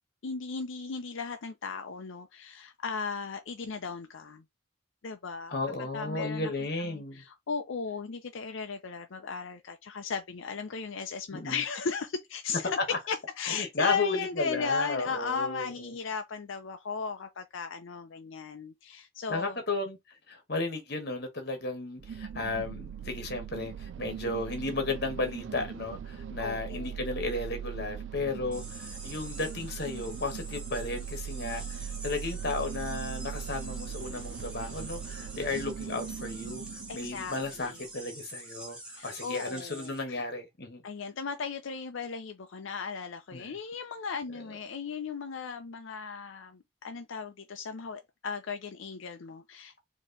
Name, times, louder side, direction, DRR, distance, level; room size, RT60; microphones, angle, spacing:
voice 1, 0.2-4.4 5.0-5.6 5.9-6.5 6.8-12.8 13.1-19.6 26.4-27.0 36.9-37.8 38.9-40.2 40.8-49.8, left 5 dB, 70° left, 0.5 m, -36 dB
voice 2, 5.5-7.2 11.3-11.6 12.6-13.0 13.5-15.9 19.3-20.0 20.3-36.6 36.9-40.8 43.3-43.6 44.3-44.4, left 3 dB, 50° left, 1.2 m, -34 dB
sound 1, 22.0-37.9, right 8 dB, 65° right, 0.3 m, -40 dB
sound 2, 28.5-40.0, right 1 dB, 5° right, 1.1 m, -46 dB
4.2 x 2.9 x 3.7 m
head